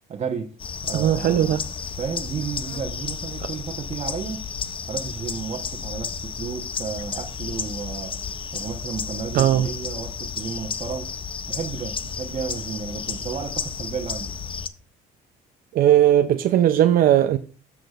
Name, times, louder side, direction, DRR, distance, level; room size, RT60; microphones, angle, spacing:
voice 1, 0.1-0.5 0.8-1.6 2.0-4.4 4.9-8.2 8.5-11.1 11.5-14.4, right 6 dB, 40° right, 1.0 m, -32 dB
sound 1, 0.6-14.7, left 6 dB, 30° left, 0.6 m, -32 dB
voice 2, 0.9-1.6 9.3-9.7 15.7-17.4, right 11 dB, 60° right, 0.5 m, -18 dB
13.0 x 6.0 x 2.4 m
cardioid pair, 110°, 17 cm